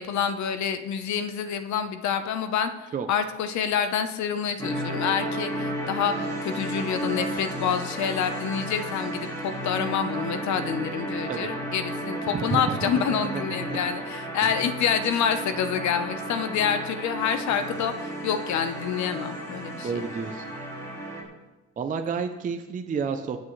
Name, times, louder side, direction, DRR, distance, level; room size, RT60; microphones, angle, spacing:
voice 1, 0.0-20.0, left 7 dB, 70° left, 9 dB, 0.9 m, -27 dB
sound 1, 4.6-21.2, right 1 dB, 10° left, 2.2 m, -33 dB
voice 2, 12.3-13.8 14.4-14.5 19.8-20.4 21.8-23.4, right 5 dB, 25° right, 6 dB, 0.5 m, -30 dB
17.0 x 8.4 x 3.2 m, 1.1 s
cardioid pair, 175°, 29 cm